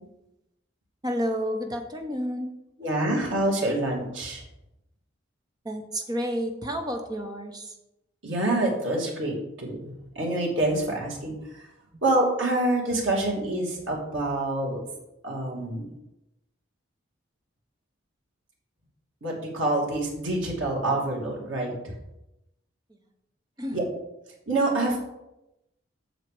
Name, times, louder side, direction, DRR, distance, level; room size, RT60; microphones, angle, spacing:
voice 1, 1.0-2.5 5.6-7.7 23.6-23.8, equal, 20° right, 4 dB, 1.1 m, -30 dB
voice 2, 2.8-4.4 8.2-9.8 10.1-11.6 12.0-14.8 15.2-15.9 19.2-21.9 23.7-23.8 24.5-25.0, right 2 dB, 85° right, -2 dB, 2.8 m, -26 dB
7.8 x 6.8 x 5.1 m, 0.90 s
head